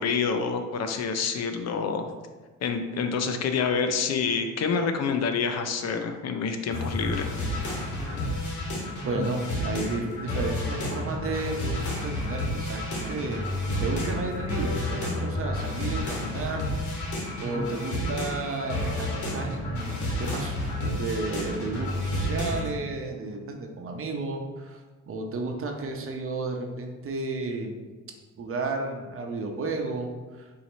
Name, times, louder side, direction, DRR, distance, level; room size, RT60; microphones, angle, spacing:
voice 1, 0.0-2.2 2.6-7.3, left 5 dB, 60° left, 7 dB, 0.5 m, -27 dB
sound 1, 6.7-22.7, left 1 dB, 75° left, 1.4 m, -30 dB
voice 2, 9.0-16.7 17.4-27.8 28.4-30.1 30.4-30.5, right 3 dB, 45° right, 2 dB, 0.8 m, -32 dB
sound 2, 11.9-13.3 13.6-13.9 17.0-18.9, equal, 5° right, 1.1 m, -47 dB
4.6 x 2.8 x 4.0 m, 1.3 s
cardioid pair, 90°, 30 cm